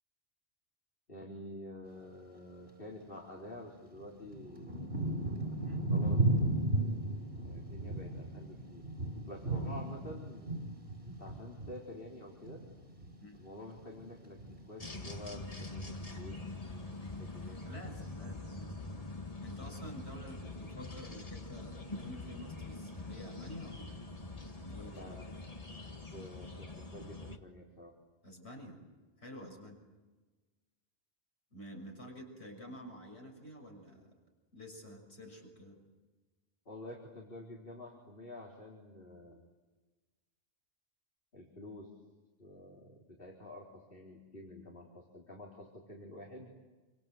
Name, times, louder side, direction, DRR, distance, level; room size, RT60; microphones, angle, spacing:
voice 1, 1.1-4.7 5.9-6.5 7.4-8.8 9.2-10.7 11.0-12.6 13.4-16.4 16.7-16.9 17.2-17.6 24.9-25.5 26.1-27.9 36.7-39.4 41.3-41.9 42.4-46.5, left 1 dB, 60° left, -2 dB, 4.3 m, -49 dB
Thunder / Rain, 3.2-3.3 3.9-13.5 13.8-14.6 15.2-15.5 15.8-16.6 17.2-17.3, right 2 dB, 65° right, 6.1 m, -35 dB
sound 1, 14.8-27.4, left 2 dB, 35° left, 1.8 m, -44 dB
voice 2, 17.4-19.0 19.4-24.0 24.5-25.2 28.2-28.9 29.2-29.8 31.5-34.1 34.5-35.8, equal, 90° left, 1 dB, 6.7 m, -49 dB
28.5 x 26.0 x 7.9 m, 1.2 s
omnidirectional pair, 1.1 m